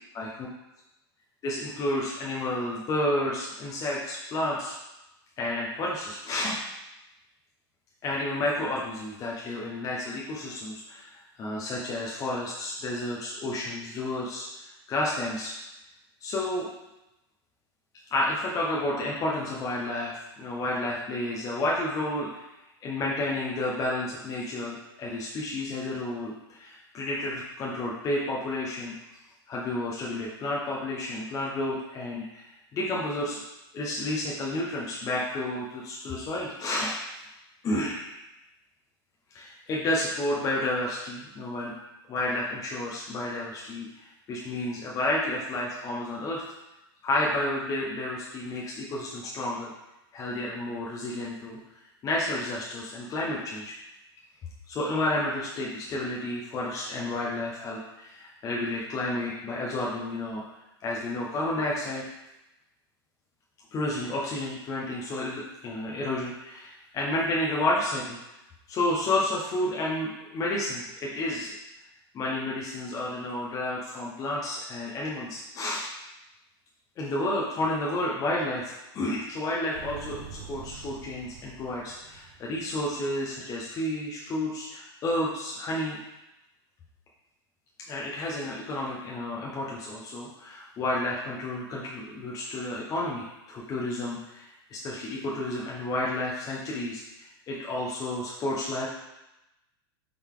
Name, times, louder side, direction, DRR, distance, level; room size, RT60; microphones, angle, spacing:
voice 1, 0.1-0.5 1.4-4.7 5.4-6.6 8.0-14.5 14.9-15.5 16.2-16.7 18.1-22.4 22.8-28.9 29.5-33.4 33.7-37.0 37.6-38.1 39.3-41.7 42.1-46.4 47.0-49.7 50.1-51.6 52.0-53.7 54.7-60.4 60.8-62.1 63.7-68.2 68.7-71.6 72.1-75.8 77.0-86.0 87.9-98.9, left 1 dB, 25° left, -4 dB, 1.0 m, -31 dB
Motorcycle, 79.7-83.7, right 6 dB, 55° right, 1.0 m, -46 dB
7.8 x 3.9 x 3.8 m, 0.95 s
supercardioid pair, 145°, 13 cm